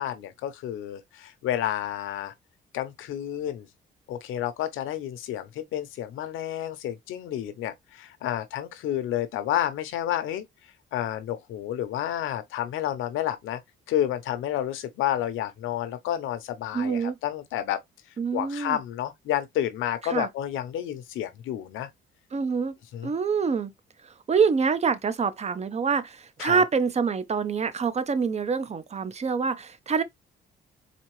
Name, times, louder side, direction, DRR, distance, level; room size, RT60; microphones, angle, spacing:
voice 1, 0.0-2.3 2.7-3.7 4.1-10.4 10.9-13.6 13.9-17.8 18.3-21.9 22.9-23.1 26.4-26.6, left 11 dB, 90° left, 0.8 m, -30 dB
voice 2, 16.7-17.2 18.2-18.8 20.1-20.3 22.3-22.7 23.0-23.7 24.3-30.0, right 5 dB, 35° right, 0.6 m, -26 dB
4.2 x 2.7 x 3.1 m
cardioid pair, 90°, 20 cm